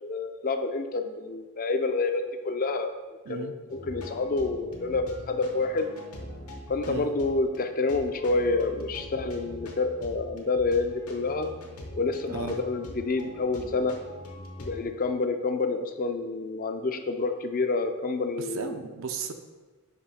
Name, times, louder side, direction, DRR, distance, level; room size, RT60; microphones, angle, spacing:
voice 1, 0.0-2.9 3.3-5.9 6.7-11.5 12.0-14.0 14.6-18.7, left 3 dB, 40° left, 7 dB, 0.4 m, -28 dB
sound 1, 3.7-14.8, left 1 dB, 75° left, 1.0 m, -43 dB
voice 2, 18.5-19.3, right 5 dB, 60° right, 7 dB, 0.5 m, -34 dB
6.0 x 3.1 x 5.6 m, 1.3 s
head